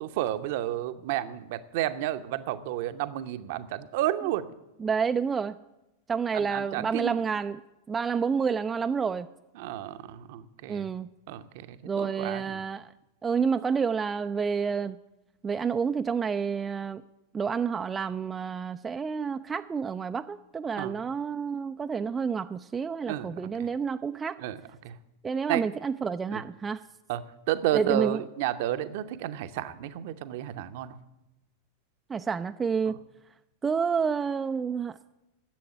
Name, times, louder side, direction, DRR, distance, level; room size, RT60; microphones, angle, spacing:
voice 1, 0.0-4.5 6.3-7.1 9.5-10.9 11.3-12.6 20.8-21.0 23.1-23.7 24.4-24.6 24.8-24.9 25.5-25.6 26.3-26.4 27.1-27.2 27.5-31.0 32.9-33.0, right 13 dB, 50° right, 11 dB, 0.7 m, -31 dB
voice 2, 4.8-5.5 6.1-7.6 7.9-9.3 10.7-11.1 11.8-12.9 13.2-15.0 15.4-17.0 17.3-24.4 25.2-26.8 27.7-28.2 32.1-33.0 33.6-35.0, right 6 dB, 15° right, 9 dB, 0.3 m, -29 dB
10.5 x 7.7 x 9.7 m, 0.99 s
figure-of-eight pair, 90°, 0 cm